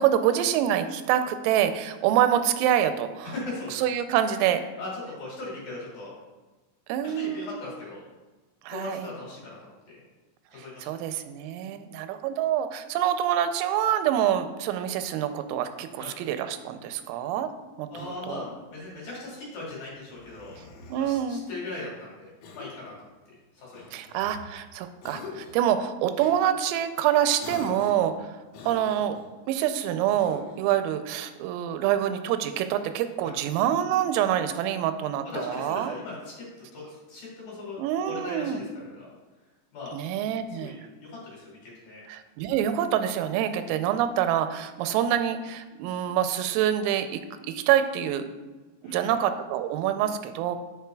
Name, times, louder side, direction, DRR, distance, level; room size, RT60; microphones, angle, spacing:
voice 1, 0.0-3.3 3.7-4.6 6.9-7.5 8.6-9.1 10.5-17.5 17.8-18.4 20.9-21.4 23.9-28.3 28.7-29.2 29.5-36.0 37.8-38.6 39.9-40.8 42.1-48.2 48.8-50.6, right 10 dB, 90° right, 9 dB, 3.2 m, -26 dB
voice 2, 3.2-3.8 4.3-6.1 7.0-8.0 8.7-9.6 10.5-10.9 16.0-16.1 17.9-20.6 21.0-22.9 23.5-24.0 33.2-33.4 35.2-36.5 36.7-37.8 38.1-39.1 39.7-40.0 40.5-42.0 48.8-49.1, left 2 dB, 55° left, -4 dB, 2.8 m, -39 dB
Cough, 17.9-18.7 20.0-21.2 22.4-22.9 23.7-24.6 25.0-25.7 26.2-26.4 27.4-28.1 28.5-29.3 30.1-30.7, left 4 dB, 90° left, 4.0 m, -44 dB
9.1 x 8.1 x 2.3 m, 1.2 s
omnidirectional pair, 5.8 m